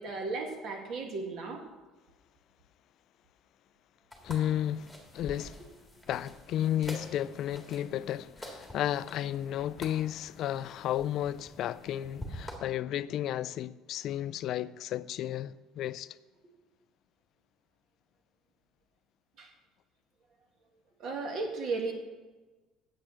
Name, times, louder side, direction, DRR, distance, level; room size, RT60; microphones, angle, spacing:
voice 1, 0.0-1.6 19.4-19.5 21.0-21.9, right 3 dB, 50° right, 1.8 m, -35 dB
sound 1, 4.1-12.6, equal, ahead, 1.9 m, -47 dB
voice 2, 4.2-5.7 6.1-16.2, left 11 dB, 50° left, 0.3 m, -33 dB
10.0 x 8.0 x 6.4 m
cardioid pair, 165°, 0 cm